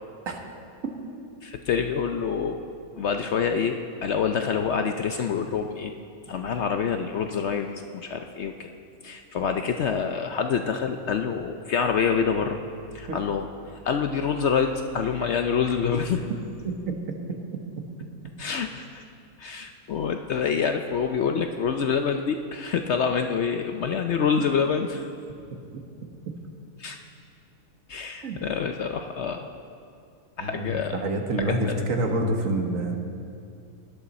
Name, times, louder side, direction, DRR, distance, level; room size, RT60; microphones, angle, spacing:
voice 1, 1.4-2.7 2.9-5.9 6.3-8.7 9.0-12.6 12.9-13.5 13.7-16.2 18.4-19.0 19.4-25.1 26.8-27.0 27.9-29.5 30.4-31.0 31.7-31.8, left 6 dB, 60° left, 5 dB, 0.8 m, -26 dB
voice 2, 30.4-32.9, right 1 dB, 65° right, 3 dB, 1.5 m, -27 dB
18.0 x 11.0 x 4.2 m, 2.4 s
omnidirectional pair, 1.5 m